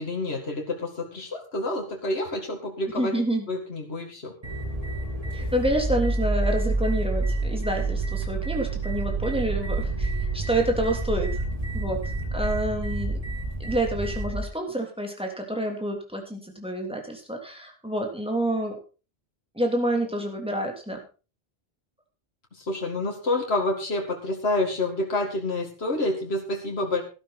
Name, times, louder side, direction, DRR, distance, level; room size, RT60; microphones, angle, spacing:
voice 1, 0.0-3.1 3.5-4.3 22.6-27.0, left 2 dB, 75° left, 1 dB, 2.4 m, -28 dB
voice 2, 3.0-3.5 5.3-11.4 11.7-12.0 12.3-13.2 13.6-18.8 19.5-21.0, right 1 dB, 5° right, 2 dB, 3.2 m, -28 dB
sound 1, 4.4-14.4, right 2 dB, 35° right, 2.7 m, -28 dB
14.0 x 12.0 x 4.1 m, 0.33 s
omnidirectional pair, 1.1 m